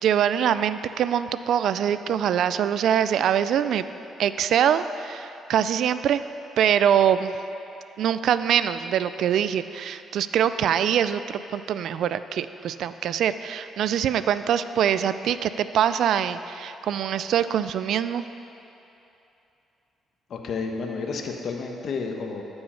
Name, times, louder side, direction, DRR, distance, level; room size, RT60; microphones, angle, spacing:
voice 1, 0.0-3.9 4.2-6.2 6.6-7.4 8.0-18.2, right 9 dB, 75° right, 13 dB, 0.3 m, -23 dB
voice 2, 20.3-22.4, left 4 dB, 60° left, 3 dB, 1.1 m, -31 dB
13.0 x 5.5 x 5.7 m, 2.9 s
cardioid pair, 90°, 0 cm